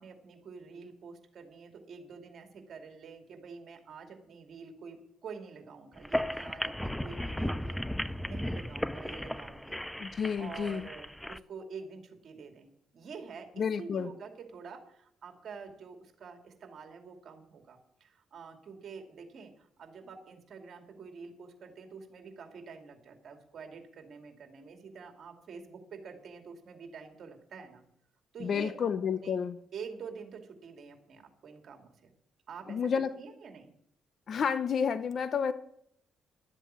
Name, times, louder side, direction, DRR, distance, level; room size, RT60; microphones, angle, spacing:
voice 1, 0.0-9.8 10.4-12.7 12.9-27.8 28.3-28.9 29.2-29.4 29.7-32.1 32.5-33.7, right 5 dB, 60° right, 5 dB, 2.5 m, -47 dB
sound 1, 6.0-11.4, left 1 dB, 5° left, 0.5 m, -35 dB
voice 2, 10.0-10.9 13.6-14.1 28.4-29.6 32.7-33.1 34.3-35.5, left 7 dB, 55° left, 12 dB, 0.7 m, -30 dB
12.5 x 8.0 x 7.5 m, 0.71 s
cardioid pair, 90°, 0 cm